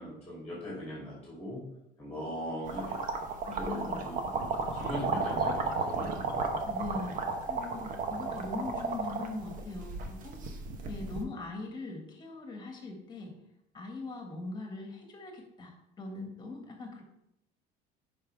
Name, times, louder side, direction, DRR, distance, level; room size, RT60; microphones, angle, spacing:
voice 1, 0.0-1.6 2.0-3.0 3.6-6.4, equal, 5° left, -6 dB, 2.5 m, -40 dB
sound 1, 2.6-11.2, right 4 dB, 50° right, 1.0 m, -34 dB
voice 2, 3.4-4.3 6.6-7.2 7.5-10.4 10.9-13.3 13.7-17.0, left 3 dB, 25° left, 2 dB, 1.7 m, -41 dB
11.0 x 5.2 x 3.4 m, 0.85 s
cardioid pair, 155°, 18 cm